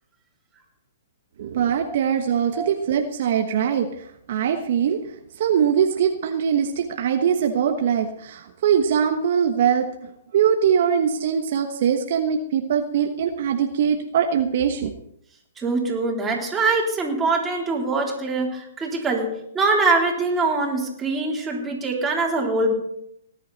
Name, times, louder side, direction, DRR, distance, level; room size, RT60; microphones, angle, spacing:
voice 1, 1.4-3.9 4.3-5.0 5.4-14.9, right 8 dB, 55° right, 5 dB, 1.3 m, -22 dB
voice 2, 15.6-22.7, right 3 dB, 15° right, -2 dB, 3.8 m, -23 dB
19.0 x 10.5 x 4.2 m, 0.76 s
hypercardioid pair, 130°, 0 cm